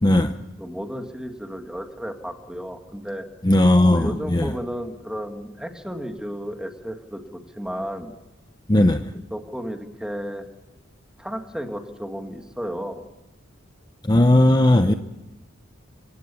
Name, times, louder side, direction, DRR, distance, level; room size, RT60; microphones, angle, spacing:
voice 1, 0.0-0.5 3.4-4.5 8.7-9.1 14.0-14.9, left 1 dB, 20° left, 8 dB, 0.8 m, -17 dB
voice 2, 0.6-3.3 3.9-8.1 9.3-10.5 11.2-13.0 14.8-15.0, equal, 5° right, 5 dB, 2.1 m, -33 dB
26.0 x 18.0 x 7.1 m, 1.0 s
head